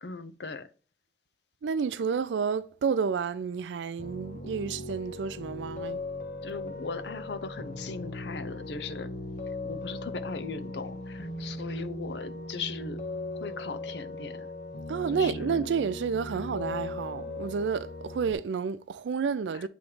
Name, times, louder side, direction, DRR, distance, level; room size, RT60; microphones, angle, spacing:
voice 1, 0.0-0.7 6.4-9.1 9.6-13.0 13.3-14.5 15.1-15.5 19.5-19.7, left 4 dB, 70° left, 0.6 m, -38 dB
voice 2, 1.6-6.0 14.9-19.7, right 6 dB, 85° right, 0.4 m, -30 dB
Piano, 4.0-18.3, left 2 dB, 45° left, 1.0 m, -38 dB
8.5 x 3.1 x 4.8 m
head